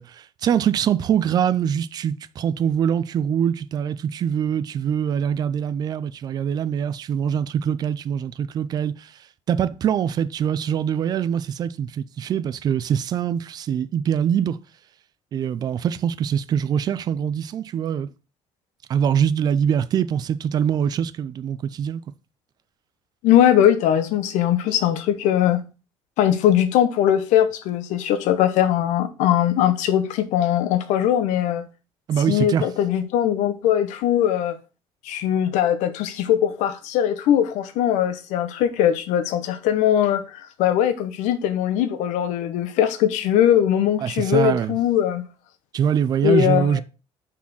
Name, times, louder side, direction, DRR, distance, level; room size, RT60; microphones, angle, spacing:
voice 1, 0.0-9.1 9.5-14.6 15.3-18.1 18.9-22.0 32.1-32.7 44.0-44.8 45.7-46.8, right 8 dB, 35° right, 0.4 m, -23 dB
voice 2, 23.2-25.6 26.2-31.6 32.3-34.5 35.0-45.2 46.2-46.8, left 10 dB, 90° left, 0.9 m, -20 dB
5.9 x 4.2 x 6.1 m
cardioid pair, 175°, 12 cm